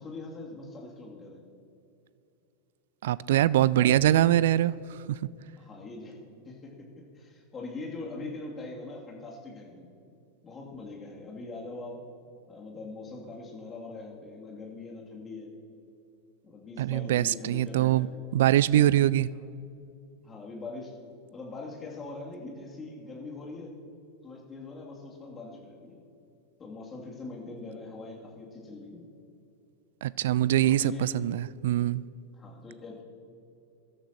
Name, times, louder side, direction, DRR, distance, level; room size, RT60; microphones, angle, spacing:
voice 1, 0.0-1.4 3.6-4.3 5.6-6.2 6.4-9.9 10.4-12.0 12.5-15.5 16.4-18.2 19.3-19.5 20.2-21.0 21.3-23.7 24.2-26.0 26.6-29.1 30.7-31.1 32.3-33.0, left 3 dB, 20° left, -2 dB, 2.7 m, -42 dB
voice 2, 3.0-4.8 5.1-5.2 16.8-18.1 18.3-19.3 30.0-32.0, right 12 dB, 55° right, 20 dB, 0.3 m, -23 dB
22.0 x 13.0 x 3.0 m, 2.7 s
figure-of-eight pair, 90°, 0 cm